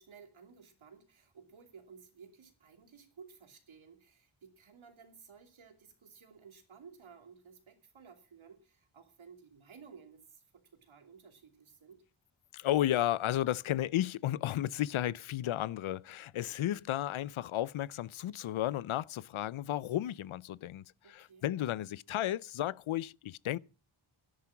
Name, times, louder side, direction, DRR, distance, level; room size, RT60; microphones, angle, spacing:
voice 1, 0.0-12.0 21.0-21.5, right 6 dB, 75° right, 3.0 m, -56 dB
voice 2, 12.5-23.6, left 13 dB, 80° left, 0.6 m, -33 dB
12.0 x 10.5 x 5.8 m
wide cardioid pair, 165°, 48 cm